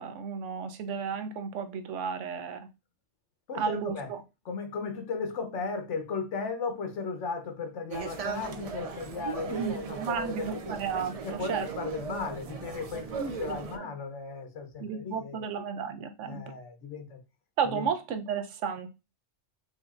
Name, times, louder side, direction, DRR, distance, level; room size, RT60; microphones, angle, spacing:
voice 1, 0.0-2.7 3.5-4.2 9.5-11.7 13.2-13.6 14.8-16.4 17.6-18.9, right 6 dB, 85° right, 1.0 m, -33 dB
voice 2, 3.5-4.1 4.5-10.7 11.2-15.5 16.2-17.2 17.7-17.9, left 4 dB, 80° left, 1.2 m, -36 dB
sound 1, 7.9-13.8, right 5 dB, 65° right, 0.3 m, -38 dB
5.3 x 2.6 x 2.4 m
omnidirectional pair, 1.2 m